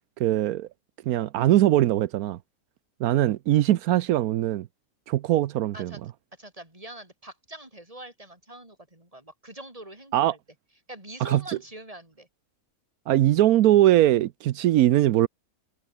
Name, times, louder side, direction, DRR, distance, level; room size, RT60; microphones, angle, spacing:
voice 1, 0.2-0.7 1.1-2.4 3.0-4.7 5.1-5.9 10.1-10.3 11.2-11.6 13.1-15.3, right 13 dB, 85° right, 1.1 m, -21 dB
voice 2, 6.4-10.4 10.9-12.3, right 1 dB, 25° right, 5.2 m, -44 dB
omnidirectional pair, 1.5 m